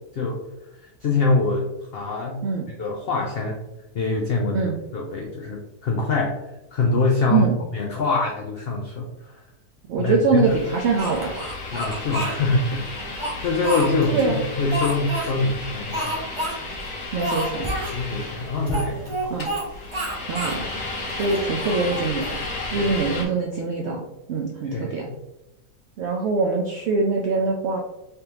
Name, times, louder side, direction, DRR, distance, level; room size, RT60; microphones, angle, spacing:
voice 1, 1.0-1.7 1.9-2.4 2.8-3.6 3.9-6.4 6.7-7.5 7.7-9.1 10.0-10.4 11.7-12.8 13.2-16.1 17.9-19.4 22.7-22.9 24.7-24.9, left 3 dB, 75° left, 0 dB, 0.5 m, -24 dB
voice 2, 9.9-11.4 14.1-14.4 17.1-17.7 19.3-19.5 20.3-20.7 21.1-22.2 22.7-24.0 24.3-25.1 26.0-27.8, right 4 dB, 75° right, -1 dB, 0.6 m, -23 dB
sound 1, 10.4-23.2, left 2 dB, 55° left, 1.0 m, -34 dB
Speech, 11.0-12.4 12.9-14.2 14.7-15.3 15.9-16.5 16.8-16.9 17.2-18.0 18.7-19.6 19.9-20.6 21.1-22.5, equal, 25° right, 0.7 m, -29 dB
3.4 x 3.3 x 2.9 m, 0.93 s
omnidirectional pair, 1.6 m